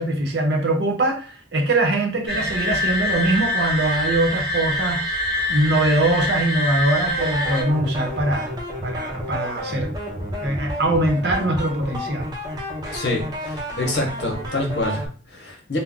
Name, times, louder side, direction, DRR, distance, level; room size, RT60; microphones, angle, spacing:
voice 1, 0.0-5.0 5.5-8.5 8.8-9.9 10.4-12.3, right 1 dB, 65° right, 2 dB, 0.7 m, -22 dB
sound 1, 2.3-7.6, left 1 dB, ahead, 0.9 m, -25 dB
sound 2, 7.1-15.1, equal, 25° right, 0.7 m, -31 dB
voice 2, 12.9-15.8, left 2 dB, 70° left, 0 dB, 0.9 m, -27 dB
2.3 x 2.1 x 3.7 m, 0.37 s
head